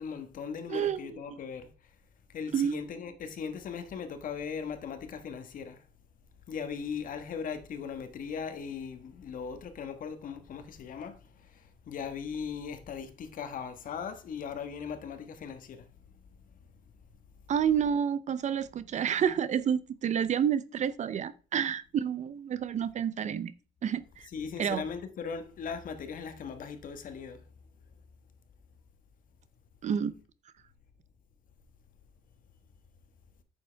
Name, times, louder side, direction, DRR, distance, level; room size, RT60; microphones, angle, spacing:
voice 1, 0.0-1.7 2.3-5.8 6.5-15.9 24.3-27.4, left 6 dB, 55° left, 1.4 m, -39 dB
voice 2, 0.7-1.4 2.5-2.8 17.5-23.5 23.8-24.3 24.6-24.8 29.8-30.1, right 8 dB, 45° right, 0.6 m, -29 dB
9.3 x 7.2 x 3.4 m
cardioid pair, 110°, 17 cm